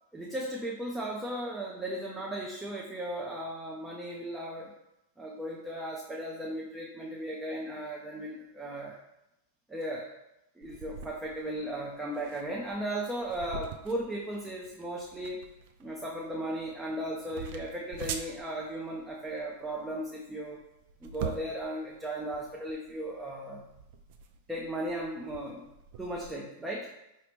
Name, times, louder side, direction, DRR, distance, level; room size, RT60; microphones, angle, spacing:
voice 1, 0.1-4.7 5.2-9.0 9.7-10.1 10.6-15.4 15.8-20.6 21.0-23.7 24.5-25.7 26.0-26.9, right 1 dB, 10° right, -3 dB, 0.6 m, -36 dB
sound 1, 10.6-26.3, right 7 dB, 50° right, 0.4 m, -45 dB
4.8 x 2.8 x 3.3 m, 0.89 s
figure-of-eight pair, 95°, 0 cm